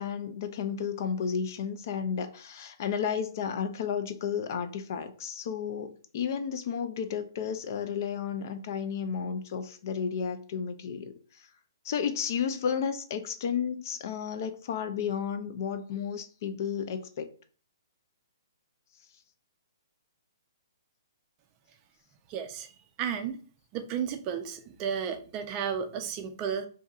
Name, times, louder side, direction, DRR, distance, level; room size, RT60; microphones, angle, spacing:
voice 1, 0.0-11.5 11.8-17.3, left 7 dB, 45° left, 0.5 m, -32 dB
voice 2, 22.3-22.7 23.0-23.4 23.7-26.7, right 7 dB, 25° right, 0.4 m, -33 dB
5.2 x 2.7 x 2.4 m
hypercardioid pair, 155°, 2 cm